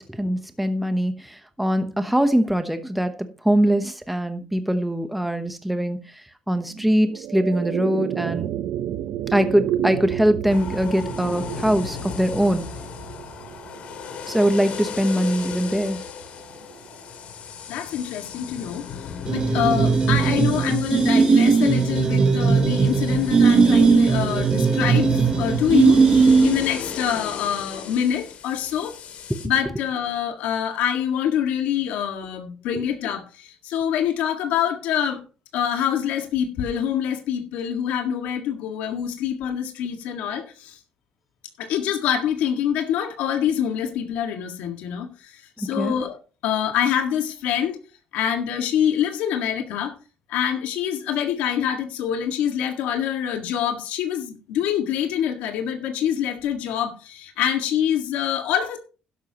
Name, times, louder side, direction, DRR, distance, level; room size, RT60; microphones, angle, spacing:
voice 1, 0.0-3.1 3.4-8.5 9.3-12.7 14.3-16.0 45.6-45.9, equal, 5° right, 0.9 m, -22 dB
sound 1, 6.7-17.2, right 11 dB, 75° right, 0.7 m, -32 dB
sound 2, 10.5-29.5, left 7 dB, 60° left, 2.4 m, -35 dB
voice 2, 17.7-29.0 29.4-35.2 35.5-40.8 41.6-46.2 46.4-47.8 48.1-49.9 50.3-58.8, left 9 dB, 85° left, 1.8 m, -25 dB
sound 3, 19.3-26.8, right 5 dB, 30° right, 1.2 m, -18 dB
12.0 x 11.0 x 2.9 m
cardioid pair, 130°, 3 cm